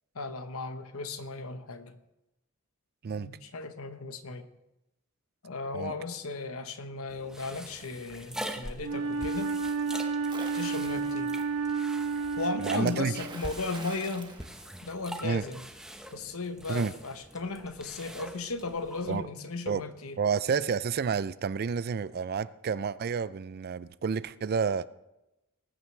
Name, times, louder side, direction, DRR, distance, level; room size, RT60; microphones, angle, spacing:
voice 1, 0.1-1.9 3.2-4.5 5.4-9.5 10.5-11.3 12.4-14.3 14.8-15.6 16.1-20.2, left 3 dB, 70° left, 1.0 m, -36 dB
voice 2, 3.0-3.4 5.7-5.9 12.6-13.3 15.2-15.5 16.7-17.0 19.1-19.3 19.7-19.9 20.2-24.9, right 6 dB, 45° right, 0.4 m, -30 dB
sound 1, 7.1-19.2, right 1 dB, 5° right, 0.8 m, -44 dB
Wind instrument woodwind instrument, 8.8-13.6, right 4 dB, 85° right, 0.9 m, -31 dB
Splash splatter, 10.3-11.2 12.9-15.3, right 3 dB, 20° right, 1.1 m, -46 dB
20.0 x 9.2 x 3.3 m
head